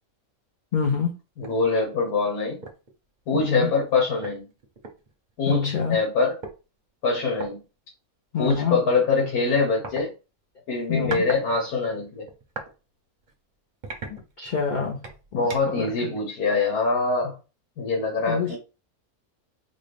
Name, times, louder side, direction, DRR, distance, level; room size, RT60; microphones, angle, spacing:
voice 1, 0.7-1.1 3.3-3.7 5.5-6.0 8.3-8.8 10.9-11.2 14.1-15.0 15.3-15.5 15.8-15.9 18.3-18.5, left 6 dB, 50° left, 1 dB, 0.5 m, -26 dB
voice 2, 1.4-2.6 3.3-4.5 5.4-6.3 7.0-7.6 8.4-10.1 10.7-12.3 15.3-17.3 17.8-18.6, left 4 dB, 85° left, -1 dB, 1.6 m, -24 dB
sound 1, 1.4-1.6 2.1-2.2 2.6-2.9 3.9-4.0 4.2-5.6 6.4-6.6 7.3-7.5 8.5-8.7 9.8-10.0 10.8-11.4 11.8-12.7 13.2-13.3 13.8-14.6 15.0-15.8, right 3 dB, 40° right, 0.7 m, -38 dB
4.1 x 2.3 x 3.3 m, 0.31 s
omnidirectional pair, 1.5 m